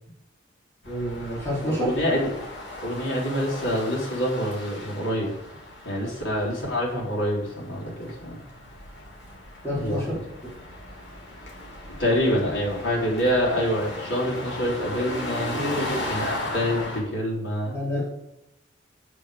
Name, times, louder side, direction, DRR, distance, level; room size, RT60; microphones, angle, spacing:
sound 1, 0.8-17.0, left 1 dB, 70° left, 3.2 m, -37 dB
voice 1, 0.9-1.9 9.6-10.1 15.5-16.0 17.6-18.0, equal, 15° left, -8 dB, 3.9 m, -28 dB
voice 2, 1.8-2.3 2.8-5.3 5.8-8.4 9.8-10.2 12.0-15.6 16.1-17.7, equal, 90° left, -4 dB, 4.0 m, -26 dB
9.1 x 7.9 x 5.0 m, 0.86 s
head